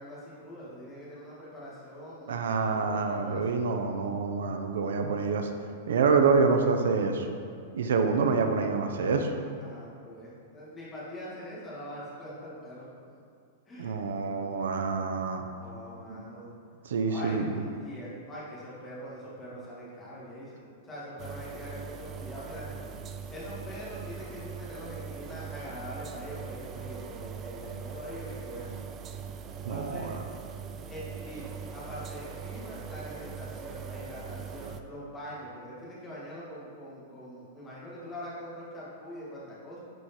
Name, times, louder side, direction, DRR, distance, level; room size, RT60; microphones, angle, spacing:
voice 1, 0.0-3.4 9.6-12.9 13.7-14.0 15.6-16.6 17.1-22.8 23.3-28.8 29.7-30.1 30.9-39.8, equal, 10° left, -8 dB, 2.0 m, -43 dB
voice 2, 2.3-5.5 5.9-7.3 7.7-9.3 13.8-15.4 16.1-16.2 16.8-17.6 29.6-30.1, right 4 dB, 85° right, 5 dB, 0.8 m, -27 dB
sound 1, 21.2-34.8, right 6 dB, 20° right, 0.4 m, -41 dB
10.5 x 4.9 x 4.4 m, 2.3 s
supercardioid pair, 175°, 0 cm